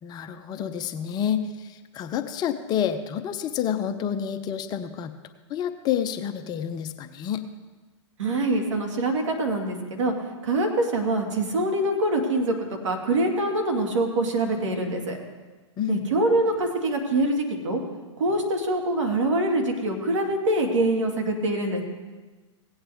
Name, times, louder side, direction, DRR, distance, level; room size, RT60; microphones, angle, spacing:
voice 1, 0.0-5.1 5.5-7.4 15.8-16.0, left 9 dB, 25° left, 8 dB, 0.6 m, -29 dB
voice 2, 8.2-10.1 10.4-12.5 12.8-15.2 15.9-17.8 18.2-21.8, right 2 dB, 70° right, 3 dB, 2.1 m, -24 dB
17.0 x 8.7 x 3.5 m, 1.3 s
hypercardioid pair, 120°, 16 cm